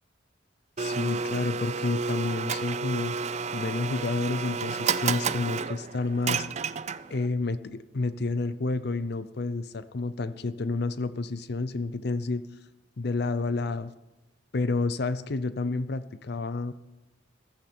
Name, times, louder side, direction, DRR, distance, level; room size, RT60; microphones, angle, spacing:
voice 1, 0.8-3.2 3.5-6.5 7.1-12.4 13.0-13.9 14.5-16.7, left 3 dB, 55° left, 14 dB, 0.6 m, -30 dB
Domestic sounds home sounds, 0.8-7.3, right 5 dB, 35° right, 0.4 m, -31 dB
15.0 x 13.5 x 4.4 m, 1.0 s
head